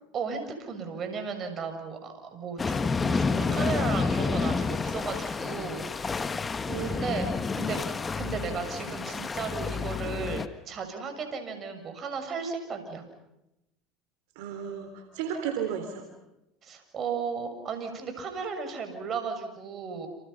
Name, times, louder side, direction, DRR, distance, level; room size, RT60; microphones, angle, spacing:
voice 1, 0.1-5.9 6.8-7.8 8.2-13.0 16.6-20.1, right 5 dB, 40° right, 6 dB, 6.8 m, -35 dB
sound 1, 2.6-10.5, left 4 dB, 25° left, 1.5 m, -29 dB
voice 2, 6.7-7.4 14.4-16.1, right 8 dB, 75° right, 6 dB, 3.5 m, -34 dB
30.0 x 28.5 x 5.8 m, 0.89 s
supercardioid pair, 90°, 0 cm